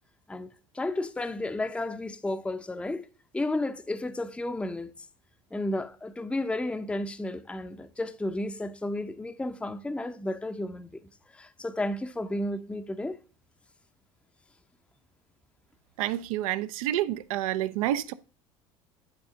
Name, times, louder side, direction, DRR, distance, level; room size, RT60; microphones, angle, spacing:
voice 1, 0.7-3.1 3.3-4.9 5.5-13.2, left 1 dB, 5° left, 0.6 m, -32 dB
voice 2, 16.0-18.1, right 13 dB, 70° right, 0.5 m, -29 dB
9.7 x 4.1 x 3.6 m
hypercardioid pair, 70°, 18 cm